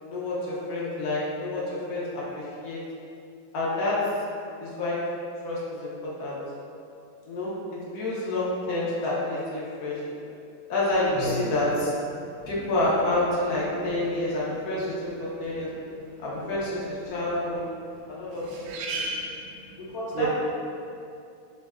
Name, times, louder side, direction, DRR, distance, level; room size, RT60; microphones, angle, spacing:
voice 1, 0.0-2.8 3.5-4.0 4.6-5.0 5.4-6.4 7.2-10.0 10.7-11.9 12.5-15.7 16.2-17.6 18.2-19.0 19.9-20.3, left 2 dB, 85° left, -7 dB, 0.8 m, -28 dB
voice 2, 18.4-19.5 19.8-19.9 20.1-20.3, right 4 dB, 90° right, -1 dB, 1.4 m, -31 dB
3.4 x 2.1 x 3.4 m, 2.6 s
omnidirectional pair, 2.3 m